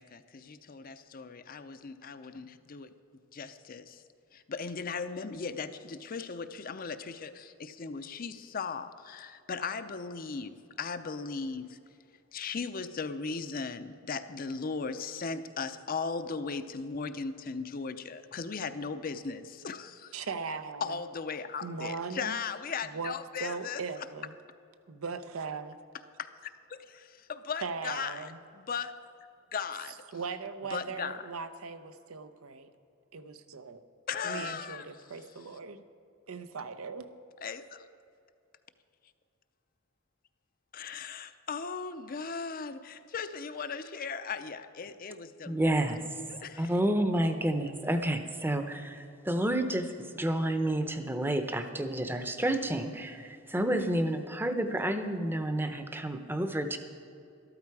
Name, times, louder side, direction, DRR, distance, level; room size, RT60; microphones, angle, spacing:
voice 1, 0.0-2.9 3.3-4.0 4.3-11.8 12.3-20.1 20.8-23.8 26.2-28.9 29.5-30.0 30.7-31.2 34.1-34.9 37.4-37.9 40.7-45.8 46.3-46.7, left 5 dB, 45° left, 10 dB, 0.6 m, -37 dB
voice 2, 20.1-21.0 21.6-22.4 22.9-23.1 23.4-24.4 24.9-25.8 27.6-28.4 30.1-32.7 33.1-33.8 34.2-35.8 36.3-37.1, right 5 dB, 85° right, 10 dB, 0.7 m, -39 dB
voice 3, 45.4-46.0 46.6-56.8, right 1 dB, 10° right, 8 dB, 0.7 m, -30 dB
13.0 x 13.0 x 4.8 m, 2.6 s
head